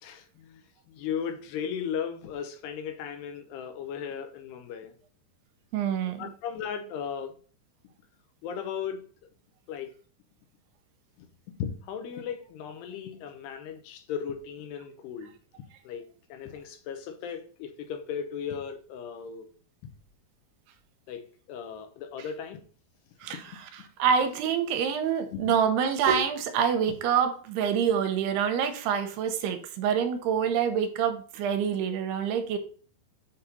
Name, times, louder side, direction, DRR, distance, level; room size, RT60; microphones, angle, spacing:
voice 1, 0.0-4.9 6.2-7.4 8.4-9.1 9.7-9.9 11.2-19.5 21.1-22.6 23.3-23.9 25.3-25.6, left 7 dB, 85° left, 2.9 m, -37 dB
voice 2, 5.7-6.2 23.2-23.4 24.0-32.6, right 7 dB, 85° right, 2.8 m, -26 dB
7.7 x 4.1 x 4.1 m
omnidirectional pair, 4.8 m